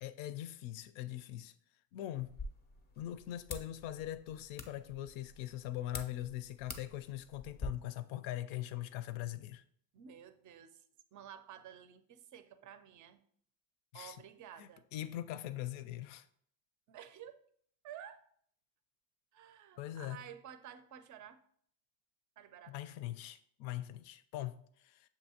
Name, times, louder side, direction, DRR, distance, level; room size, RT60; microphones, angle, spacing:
voice 1, 0.0-1.5 1.9-2.4 3.0-9.6 13.9-14.2 14.6-16.3 19.8-20.2 22.7-25.1, left 13 dB, 70° left, 0.6 m, -42 dB
sound 1, 2.2-7.7, left 4 dB, 20° left, 0.5 m, -48 dB
voice 2, 9.9-10.8 11.1-13.2 13.9-14.8 16.9-17.4 17.8-18.3 19.3-21.4 22.4-22.7, right 9 dB, 40° right, 0.5 m, -52 dB
6.8 x 2.7 x 2.8 m
supercardioid pair, 95°, 49 cm